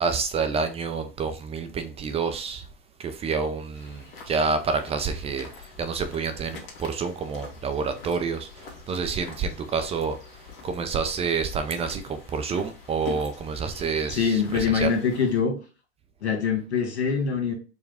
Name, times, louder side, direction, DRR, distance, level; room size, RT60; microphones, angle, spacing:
voice 1, 0.0-2.6 3.0-5.5 5.8-8.5 8.9-10.1 10.6-14.3 14.7-14.9, right 5 dB, 20° right, 0.4 m, -28 dB
sound 1, 3.7-15.4, left 5 dB, 55° left, 1.5 m, -46 dB
voice 2, 14.1-15.5 16.2-17.5, left 6 dB, 85° left, 1.5 m, -24 dB
4.7 x 2.2 x 3.4 m
hypercardioid pair, 100°, 32 cm